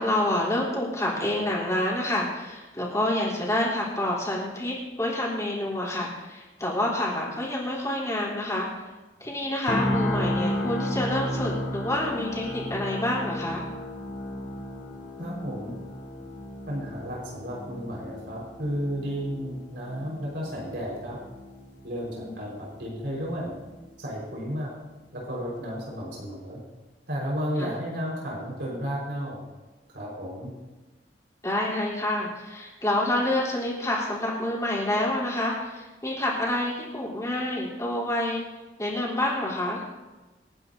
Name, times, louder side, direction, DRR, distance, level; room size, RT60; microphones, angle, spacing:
voice 1, 0.0-8.7 9.2-13.7 22.1-22.4 27.6-27.7 31.4-38.4 38.8-39.8, left 1 dB, 15° left, -6 dB, 3.7 m, -28 dB
sound 1, 9.7-23.7 24.0-24.2, left 1 dB, 80° left, 5.5 m, -34 dB
voice 2, 15.2-15.7 16.7-21.2 21.8-22.5 22.8-23.5 24.0-24.7 25.1-26.6 27.1-29.4 29.9-30.5, equal, 65° right, -4 dB, 4.9 m, -33 dB
27.5 x 9.7 x 2.8 m, 1.2 s
head